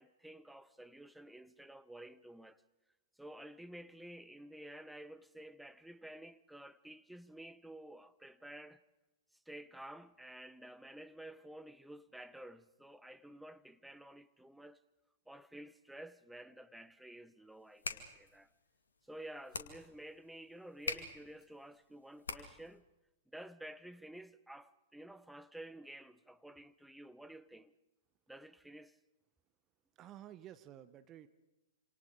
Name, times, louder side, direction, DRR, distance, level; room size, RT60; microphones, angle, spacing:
voice 1, 0.0-2.6 3.2-8.8 9.5-14.8 15.3-18.5 19.1-22.9 23.3-27.7 28.3-29.0, right 1 dB, ahead, 1.0 m, -52 dB
sound 1, 17.6-22.8, left 4 dB, 70° left, 2.4 m, -45 dB
voice 2, 30.0-31.3, right 12 dB, 25° right, 1.2 m, -52 dB
27.0 x 27.0 x 5.1 m
figure-of-eight pair, 105°, 0 cm